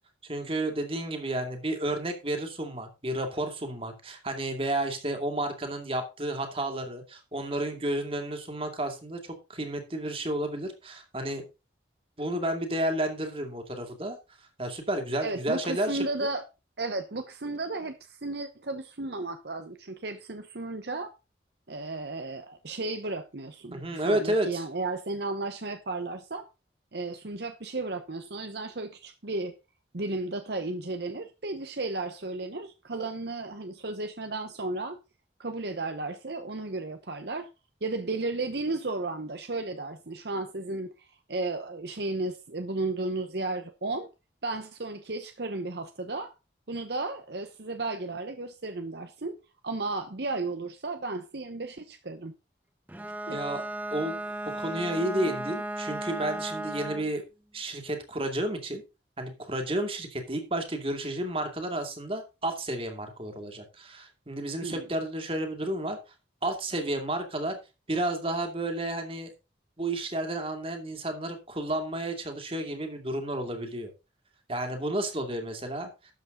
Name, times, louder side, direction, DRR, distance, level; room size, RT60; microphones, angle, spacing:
voice 1, 0.2-11.4 12.2-14.2 14.6-16.3 23.7-24.6 53.3-53.6 53.9-54.2 54.5-57.2 57.5-58.8 59.2-66.0 66.4-67.6 67.9-69.3 69.8-73.9 74.5-76.1, right 1 dB, 30° right, 2.4 m, -31 dB
voice 2, 15.2-16.4 16.8-21.1 21.7-26.5 26.9-29.5 29.9-35.0 35.4-37.5 37.8-44.1 44.4-46.3 46.7-49.4 49.6-52.3 53.3-53.4 64.6-64.9, right 2 dB, 60° right, 1.0 m, -34 dB
Bowed string instrument, 52.9-57.2, right 1 dB, 10° right, 1.1 m, -35 dB
13.0 x 8.1 x 3.9 m
head